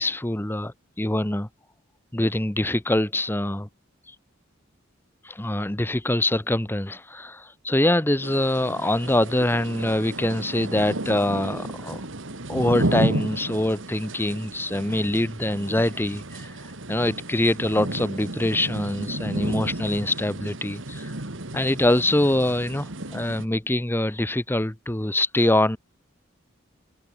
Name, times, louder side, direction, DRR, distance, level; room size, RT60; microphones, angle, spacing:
voice 1, 0.0-1.5 2.1-3.7 5.2-12.0 12.5-21.2 21.5-25.8, left 1 dB, 10° left, 0.8 m, -24 dB
sound 1, 8.2-23.5, right 1 dB, 70° right, 2.4 m, -33 dB
head